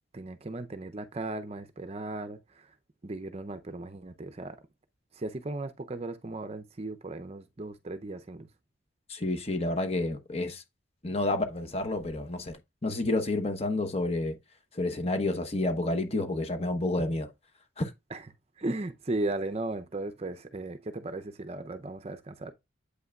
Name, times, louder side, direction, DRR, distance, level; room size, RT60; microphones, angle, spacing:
voice 1, 0.1-2.7 3.0-4.6 5.2-8.4 18.1-18.2 18.6-22.5, right 2 dB, 30° right, 0.5 m, -36 dB
voice 2, 9.1-10.6 11.0-12.6 12.8-14.4 14.7-17.3 17.8-17.9, left 2 dB, 30° left, 1.0 m, -29 dB
8.1 x 5.5 x 2.3 m
head